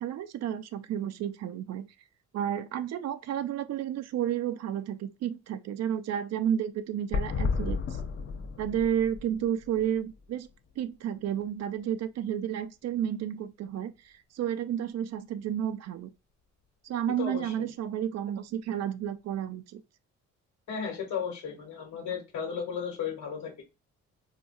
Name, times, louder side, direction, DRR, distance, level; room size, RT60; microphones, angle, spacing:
voice 1, 0.0-1.9 2.3-8.0 8.6-10.5 10.8-16.1 16.8-19.8, right 10 dB, 60° right, 0.5 m, -31 dB
sound 1, 7.1-10.9 11.2-11.3 11.4-11.5, left 4 dB, 50° left, 0.7 m, -33 dB
voice 2, 17.2-17.5 20.7-23.6, left 7 dB, 70° left, 1.2 m, -34 dB
4.8 x 2.2 x 2.6 m
cardioid pair, 90°, 30 cm